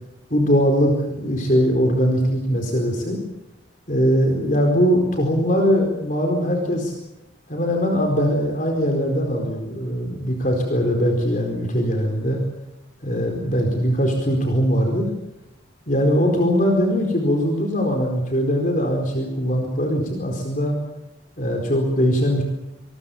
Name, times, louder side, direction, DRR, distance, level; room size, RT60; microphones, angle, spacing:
voice 1, 0.3-3.2 3.9-6.9 7.5-12.4 13.0-15.1 15.9-20.8 21.4-22.4, equal, 40° left, 2 dB, 4.5 m, -21 dB
26.5 x 22.0 x 7.2 m, 0.92 s
head